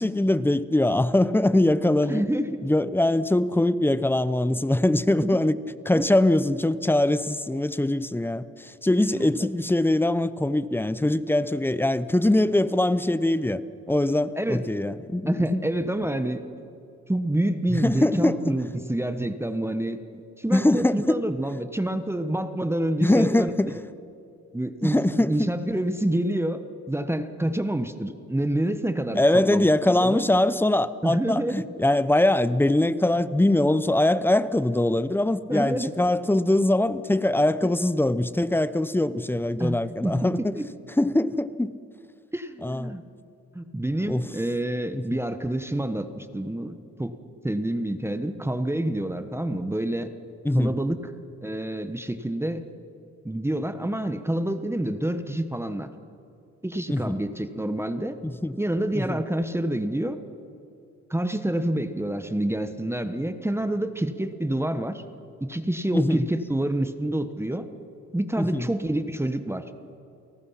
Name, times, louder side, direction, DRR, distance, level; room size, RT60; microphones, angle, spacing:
voice 1, 0.0-2.2 2.6-5.6 5.8-13.6 13.9-15.6 17.7-18.4 20.5-21.2 23.0-23.8 24.8-25.5 29.2-40.4 41.0-41.7 42.6-43.0 44.1-44.2 44.9-45.0 50.4-50.8 56.9-57.2 58.2-58.5 58.9-59.2 65.9-66.2 68.4-68.7, left 1 dB, 5° left, 0.8 m, -22 dB
voice 2, 2.1-2.6 5.2-5.4 5.9-6.0 9.1-9.5 14.4-14.6 15.3-16.4 17.1-20.0 20.4-23.5 24.5-26.6 26.9-30.2 31.0-31.7 35.5-35.9 39.6-40.3 40.6-40.7 42.3-43.0 43.5-47.1 47.4-50.1 50.5-51.0 51.4-52.6 53.2-55.9 56.6-58.2 58.6-60.2 61.1-65.0 65.4-67.6 68.1-69.6, right 1 dB, 10° right, 1.3 m, -27 dB
30.0 x 18.0 x 5.8 m
cardioid pair, 90°, 30 cm